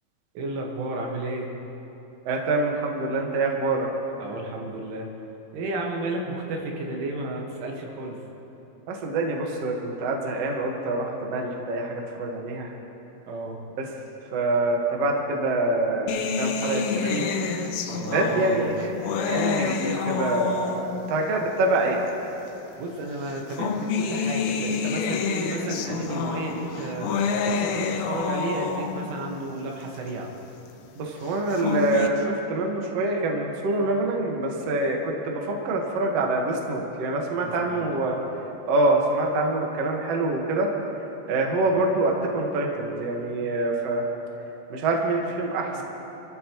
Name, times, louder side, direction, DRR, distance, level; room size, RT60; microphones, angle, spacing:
voice 1, 0.4-1.5 4.2-5.1 5.5-8.2 13.3-13.6 17.9-18.7 22.8-30.3 37.4-38.2 45.8-45.9, right 2 dB, 90° right, 0 dB, 4.2 m, -32 dB
voice 2, 2.2-3.9 8.9-12.7 13.8-13.9 14.3-17.3 18.1-18.9 19.3-22.0 30.9-38.2 38.6-40.7 41.3-44.0 44.7-45.8, right 2 dB, 65° right, 0 dB, 1.6 m, -25 dB
sound 1, 16.1-21.2 22.1-22.2 23.3-29.2 31.3-32.1, left 5 dB, 80° left, 3.0 m, -28 dB
27.0 x 14.0 x 3.1 m, 3.0 s
omnidirectional pair, 5.4 m